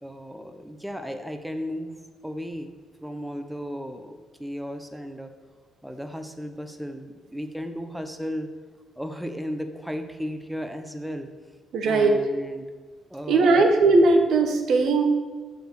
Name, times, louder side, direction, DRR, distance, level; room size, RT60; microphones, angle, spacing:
voice 1, 0.0-1.9 2.2-2.7 3.0-4.1 4.4-5.3 5.8-8.5 9.0-11.3 11.8-12.6 13.1-13.7, equal, 5° right, 6 dB, 0.8 m, -34 dB
voice 2, 11.7-12.1 13.3-15.0, right 3 dB, 70° right, 5 dB, 1.2 m, -19 dB
7.7 x 4.9 x 6.5 m, 1.4 s
cardioid pair, 90°, 0 cm